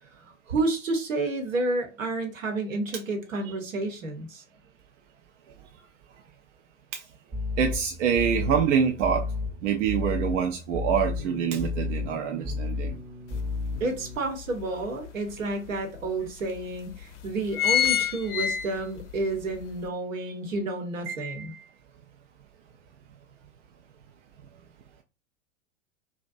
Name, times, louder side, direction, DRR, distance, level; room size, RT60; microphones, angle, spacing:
voice 1, 0.2-4.4 13.8-21.5, right 2 dB, 80° right, 1.0 m, -30 dB
sound 1, 7.3-14.2, left 3 dB, 30° right, 0.8 m, -33 dB
voice 2, 7.6-9.3 9.6-13.0 20.2-20.3 21.1-21.6, right 7 dB, 65° right, 0.5 m, -26 dB
sound 2, 13.3-13.4 13.9-15.1 15.7-15.8 16.0-16.1 16.8-17.0 17.3-19.1 19.5-19.6, left 10 dB, 65° left, 0.5 m, -26 dB
2.5 x 2.1 x 2.5 m
figure-of-eight pair, 90°, 39 cm